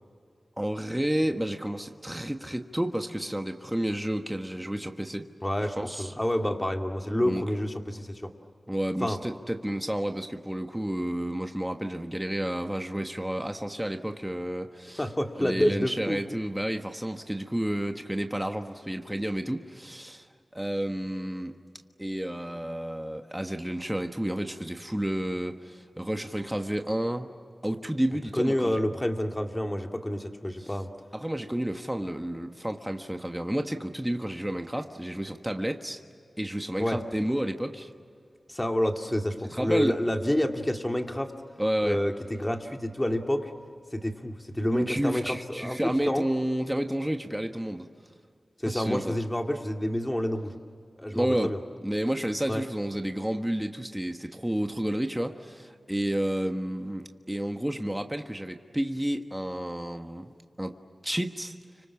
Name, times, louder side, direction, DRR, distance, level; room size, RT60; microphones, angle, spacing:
voice 1, 0.6-5.3 5.8-6.1 7.2-7.4 8.7-15.0 15.4-20.3 20.5-21.5 22.0-27.3 27.6-28.8 30.6-30.7 31.1-36.0 36.4-37.9 39.5-40.0 41.6-42.0 44.7-47.9 48.7-49.1 51.1-60.7 61.0-61.5, right 1 dB, 10° right, 5 dB, 1.4 m, -31 dB
voice 2, 5.4-8.3 9.0-9.2 15.0-16.2 28.3-30.9 36.8-37.0 38.5-41.3 41.8-43.5 43.9-46.3 48.6-50.5 51.0-51.6 52.5-52.6, left 1 dB, 15° left, 4 dB, 2.4 m, -28 dB
30.0 x 26.0 x 7.2 m, 2.2 s
wide cardioid pair, 65°, 0 cm